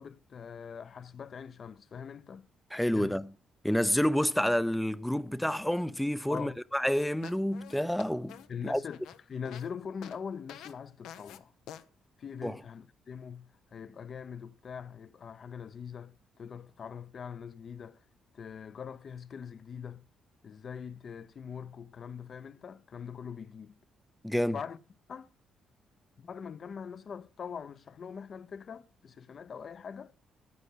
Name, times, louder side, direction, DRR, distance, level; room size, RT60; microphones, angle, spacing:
voice 1, 0.0-2.5 2.9-3.2 6.3-6.6 8.5-11.5 12.2-18.0 18.3-20.0 20.4-23.8 24.5-24.8 25.1-25.3 26.2-30.1, left 7 dB, 50° left, 0.7 m, -42 dB
voice 2, 2.7-3.3 3.6-8.8 12.4-12.6 24.2-24.6, equal, 5° left, 0.5 m, -29 dB
sound 1, 6.8-9.7 10.0-10.2 10.5-10.7 11.0-11.4 11.7-11.8, left 10 dB, 90° left, 0.9 m, -48 dB
9.7 x 9.0 x 6.8 m
cardioid pair, 90°, 0 cm